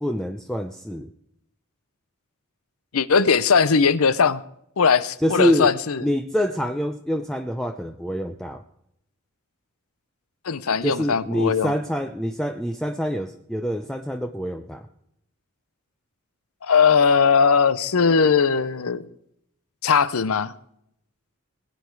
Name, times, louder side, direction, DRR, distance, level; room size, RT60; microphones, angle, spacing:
voice 1, 0.0-1.1 5.2-5.7 6.0-8.6 10.8-14.9, equal, 5° left, 0.5 m, -26 dB
voice 2, 2.9-4.4 4.8-6.1 10.4-11.7 16.6-19.1 19.8-20.5, left 5 dB, 80° left, 0.7 m, -19 dB
21.5 x 9.0 x 4.7 m
head